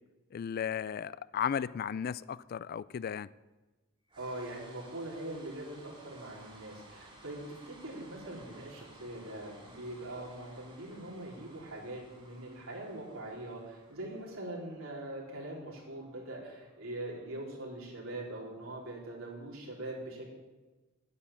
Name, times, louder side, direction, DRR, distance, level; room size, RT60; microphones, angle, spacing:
voice 1, 0.3-3.3, left 8 dB, 45° left, 0.3 m, -35 dB
sound 1, 4.1-18.2, right 1 dB, 25° right, 2.7 m, -57 dB
voice 2, 4.2-20.3, right 1 dB, 75° right, 4.2 m, -42 dB
9.5 x 9.2 x 8.8 m
head